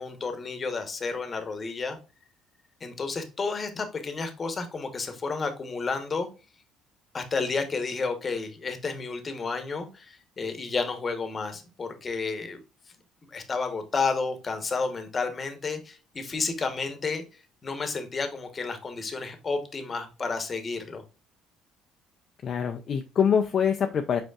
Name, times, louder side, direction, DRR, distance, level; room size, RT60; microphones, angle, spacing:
voice 1, 0.0-2.0 2.8-6.3 7.1-12.6 13.3-17.2 17.6-21.0, left 4 dB, 30° left, 7 dB, 1.1 m, -31 dB
voice 2, 22.4-24.2, left 7 dB, 50° left, 5 dB, 0.5 m, -25 dB
5.2 x 4.3 x 2.3 m, 0.32 s
cardioid pair, 90°, 0 cm